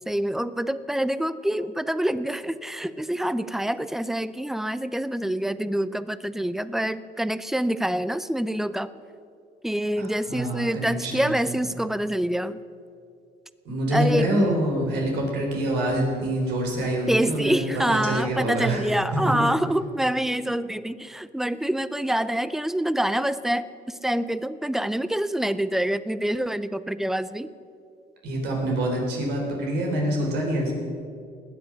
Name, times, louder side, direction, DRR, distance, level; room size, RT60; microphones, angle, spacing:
voice 1, 0.1-8.9 9.6-12.6 13.9-14.7 17.1-27.5, right 1 dB, ahead, 15 dB, 0.5 m, -26 dB
voice 2, 10.0-11.7 13.7-19.5 28.2-30.7, right 1 dB, 80° right, 0 dB, 3.9 m, -26 dB
20.5 x 8.2 x 6.3 m, 2.4 s
cardioid pair, 110°, 17 cm